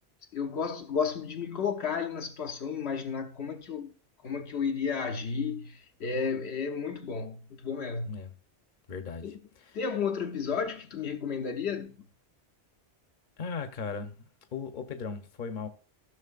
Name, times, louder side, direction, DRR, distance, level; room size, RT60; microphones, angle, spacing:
voice 1, 0.3-3.9 4.2-8.2 9.2-9.4 9.7-12.0, left 6 dB, 75° left, 1.0 m, -32 dB
voice 2, 8.9-9.8 13.4-15.7, left 5 dB, 50° left, 1.0 m, -38 dB
15.0 x 6.2 x 2.4 m
omnidirectional pair, 1.1 m